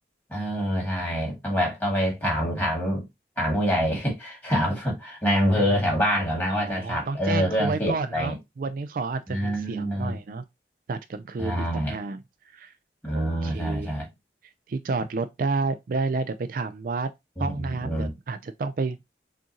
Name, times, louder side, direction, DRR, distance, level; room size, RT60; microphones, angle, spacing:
voice 1, 0.3-3.0 3.4-8.3 9.3-10.2 11.4-12.0 13.0-14.1 17.4-18.1, equal, 10° left, 2.1 m, -26 dB
voice 2, 6.5-10.4 10.9-12.2 12.5-12.7 13.1-13.9 14.7-17.1 17.4-19.0, right 4 dB, 50° right, 0.3 m, -30 dB
6.2 x 2.5 x 2.9 m
head